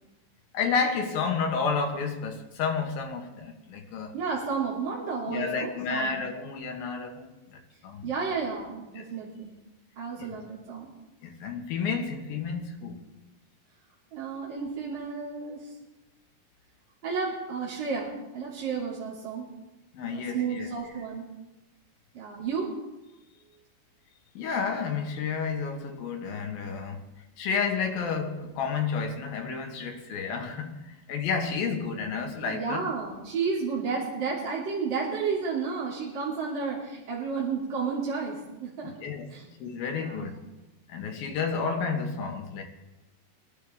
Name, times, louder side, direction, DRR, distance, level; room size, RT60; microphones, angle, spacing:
voice 1, 0.5-4.1 5.3-8.1 9.0-9.1 10.2-10.3 11.2-13.1 19.9-20.7 24.3-27.1 27.4-32.8 39.0-39.3 39.6-40.4 40.9-42.6, left 5 dB, 90° left, 3.3 m, -31 dB
voice 2, 4.1-6.2 8.0-9.5 10.0-10.9 14.1-15.7 17.0-19.5 20.1-21.3 22.1-22.7 32.4-38.9 39.3-39.4 39.9-40.3, right 5 dB, 35° right, 3.4 m, -32 dB
23.5 x 12.0 x 3.6 m
omnidirectional pair, 4.1 m